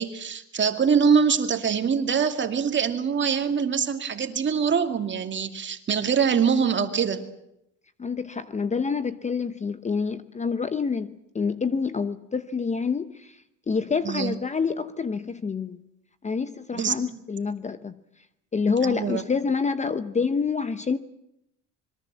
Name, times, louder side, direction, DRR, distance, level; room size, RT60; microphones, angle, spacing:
voice 1, 0.0-7.2 14.0-14.3 16.7-17.2 18.8-19.2, right 6 dB, 35° right, 7 dB, 2.4 m, -24 dB
voice 2, 8.0-15.8 16.2-18.0 18.5-21.0, left 5 dB, 20° left, 12 dB, 0.9 m, -27 dB
26.0 x 22.5 x 7.5 m, 0.80 s
cardioid pair, 125°, 34 cm